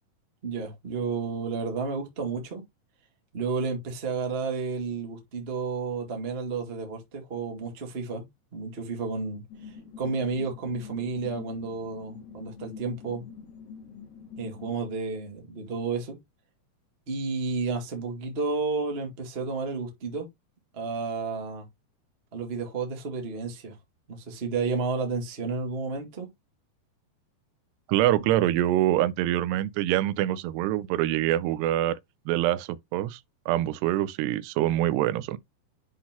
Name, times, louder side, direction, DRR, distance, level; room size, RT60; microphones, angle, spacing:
voice 1, 0.4-2.6 3.3-8.2 8.5-13.2 14.4-16.2 17.1-20.3 20.7-21.6 22.3-23.7 24.1-26.3, right 4 dB, 45° right, 0.7 m, -31 dB
sound 1, 9.5-14.7, left 6 dB, 75° left, 4.6 m, -45 dB
voice 2, 27.9-32.0 32.3-33.2 33.5-35.4, right 14 dB, 90° right, 2.7 m, -25 dB
10.5 x 3.9 x 2.9 m
omnidirectional pair, 4.7 m